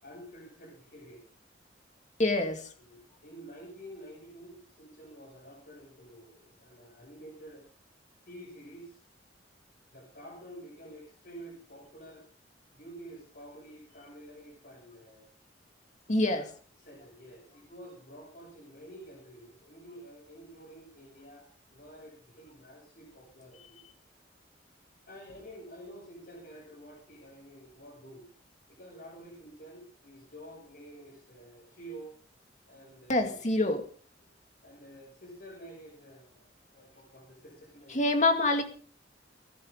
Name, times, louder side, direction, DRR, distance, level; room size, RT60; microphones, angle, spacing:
voice 1, 0.0-1.3 2.8-7.7 8.3-9.0 9.9-12.3 12.7-15.3 16.2-16.5 16.8-23.8 25.1-28.3 28.7-32.2 32.7-33.7 34.6-38.0, right 1 dB, 60° left, -5 dB, 7.0 m, -49 dB
voice 2, 2.2-2.7 16.1-16.4 33.1-33.8 37.9-38.6, left 2 dB, 40° left, 5 dB, 2.2 m, -26 dB
20.5 x 11.0 x 3.8 m, 0.42 s
head